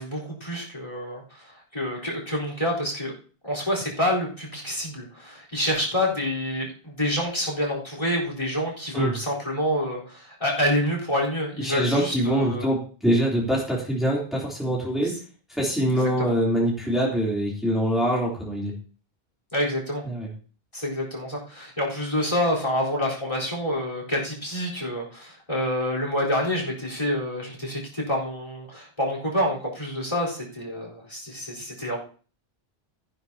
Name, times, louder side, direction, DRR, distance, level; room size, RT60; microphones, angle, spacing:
voice 1, 0.0-3.1 3.4-12.7 16.0-16.3 19.5-20.0 20.7-32.0, left 1 dB, 35° left, -1 dB, 4.3 m, -27 dB
voice 2, 11.6-15.1 15.5-18.7 20.0-20.3, right 1 dB, ahead, -4 dB, 3.3 m, -24 dB
14.5 x 11.0 x 2.9 m, 0.39 s
omnidirectional pair, 1.0 m